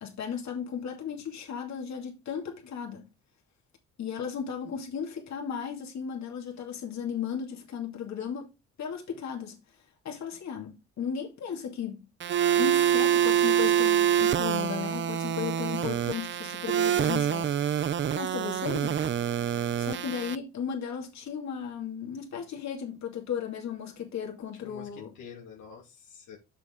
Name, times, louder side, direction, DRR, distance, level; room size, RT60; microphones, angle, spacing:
voice 1, 0.0-3.1 4.0-8.5 8.8-9.6 10.0-12.1 12.6-17.6 18.1-19.0 19.8-25.1, left 7 dB, 65° left, 2.6 m, -35 dB
sound 1, 12.2-20.3, right 9 dB, 40° right, 0.5 m, -26 dB
voice 2, 24.6-26.4, left 7 dB, 85° left, 2.3 m, -47 dB
7.1 x 6.4 x 3.8 m
cardioid pair, 90°, 30 cm